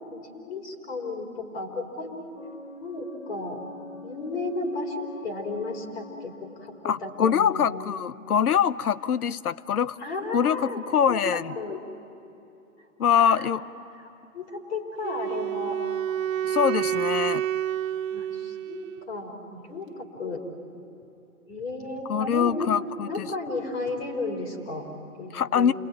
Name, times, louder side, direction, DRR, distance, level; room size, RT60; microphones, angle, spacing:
voice 1, 0.1-2.3 2.8-3.6 4.0-7.8 10.0-11.8 13.2-13.5 14.3-15.8 18.1-20.4 21.5-22.7 23.0-25.7, left 2 dB, 50° left, 1 dB, 4.2 m, -34 dB
sound 1, 2.4-8.2, left 2 dB, 35° left, 1.1 m, -44 dB
voice 2, 6.8-10.0 10.3-11.6 13.0-13.6 16.4-17.4 22.1-23.3 25.3-25.7, left 8 dB, 85° left, 18 dB, 0.8 m, -24 dB
Wind instrument woodwind instrument, 15.0-19.1, right 10 dB, 65° right, 0.5 m, -29 dB
28.5 x 21.0 x 9.2 m, 2.8 s
hypercardioid pair, 165°, 43 cm